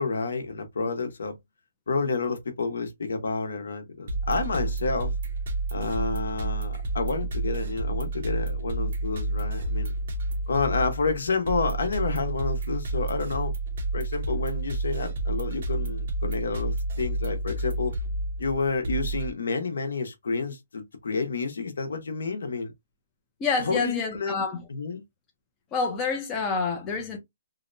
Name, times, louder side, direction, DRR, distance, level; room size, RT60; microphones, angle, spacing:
voice 1, 0.0-1.3 1.9-5.1 5.7-9.9 10.5-13.5 13.9-18.0 18.4-22.7 23.6-24.4 24.7-25.0, left 4 dB, 75° left, 0.8 m, -29 dB
sound 1, 4.1-19.3, right 2 dB, 45° right, 0.6 m, -30 dB
voice 2, 23.4-24.6 25.7-27.2, left 4 dB, 10° left, 0.4 m, -28 dB
2.7 x 2.1 x 2.5 m
hypercardioid pair, 175°, 0 cm